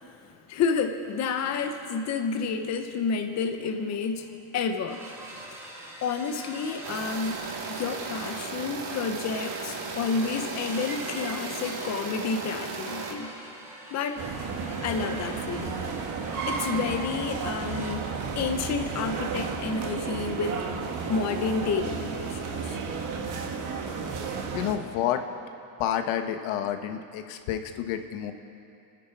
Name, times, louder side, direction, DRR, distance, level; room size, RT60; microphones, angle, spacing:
voice 1, 0.5-5.0 6.0-13.3 13.9-14.2 14.8-15.8 16.5-18.1 18.4-20.6 21.1-22.8, left 5 dB, 35° left, 6 dB, 0.9 m, -30 dB
sound 1, 3.4-3.5 3.7-3.9 4.2-4.4 4.8-17.9, right 1 dB, 5° right, 1.7 m, -44 dB
sound 2, 6.8-13.1, right 4 dB, 70° right, 2.7 m, -36 dB
sound 3, 14.2-24.8, right 5 dB, 40° right, 1.5 m, -33 dB
voice 2, 24.5-25.2 25.8-28.3, left 10 dB, 85° left, 7 dB, 1.3 m, -29 dB
29.5 x 10.0 x 4.7 m, 2.5 s
cardioid pair, 175°, 48 cm